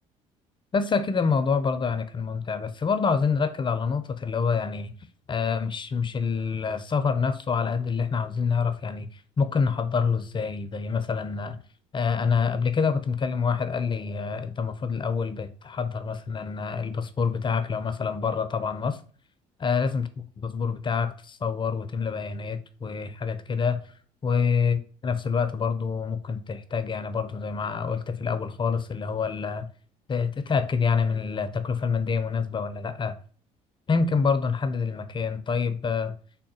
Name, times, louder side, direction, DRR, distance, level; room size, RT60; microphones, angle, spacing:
voice 1, 0.7-4.9 5.3-11.6 11.9-19.0 19.6-23.8 24.2-29.7 30.1-33.1 33.9-36.1, left 5 dB, 30° left, 0.4 m, -27 dB
3.6 x 2.2 x 4.1 m
supercardioid pair, 70°, 16 cm